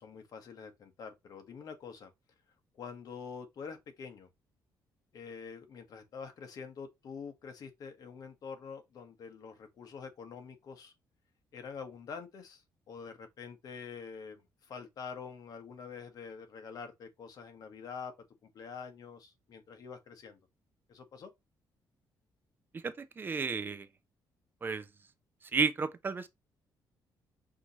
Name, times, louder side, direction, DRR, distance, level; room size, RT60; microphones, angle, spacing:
voice 1, 0.0-2.1 2.8-4.3 5.1-10.9 11.5-18.1 18.4-20.4 20.9-21.3, left 6 dB, 55° left, 1.2 m, -46 dB
voice 2, 22.8-23.9 24.6-24.8 25.5-26.3, right 4 dB, 25° right, 0.5 m, -32 dB
6.0 x 2.8 x 3.0 m
cardioid pair, 135°, 8 cm